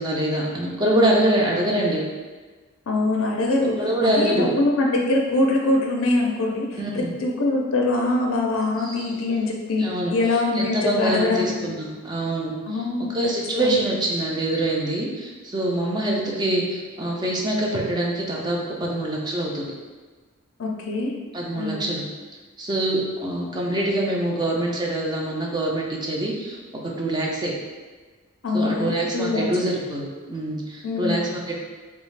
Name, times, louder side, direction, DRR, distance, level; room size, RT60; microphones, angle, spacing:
voice 1, 0.0-2.1 3.8-4.5 6.8-7.1 8.8-9.1 9.8-10.1 10.5-12.5 13.1-19.6 21.3-22.0 22.6-26.6 27.0-27.5 28.5-31.6, right 1 dB, 20° right, -2 dB, 0.4 m, -24 dB
voice 2, 2.9-11.8 12.7-13.2 13.6-13.8 20.6-21.1 21.6-21.9 28.4-29.5 30.8-31.4, left 2 dB, 65° left, 0 dB, 0.5 m, -23 dB
3.4 x 2.4 x 3.2 m, 1.4 s
head